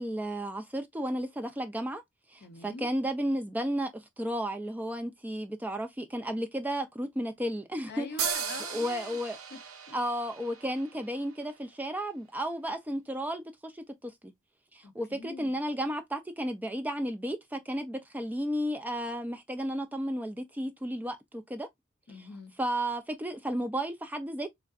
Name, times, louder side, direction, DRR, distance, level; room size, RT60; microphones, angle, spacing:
voice 1, 0.0-2.0 2.3-8.1 8.7-9.4 9.9-14.3 14.7-21.7 22.6-24.5, equal, 10° right, 0.4 m, -33 dB
voice 2, 2.4-2.9 7.9-9.2 9.5-9.6 9.9-10.0 14.8-15.6 22.1-22.5, left 3 dB, 50° left, 0.6 m, -44 dB
sound 1, 8.2-11.7, right 8 dB, 85° right, 0.8 m, -37 dB
3.7 x 3.3 x 2.3 m
head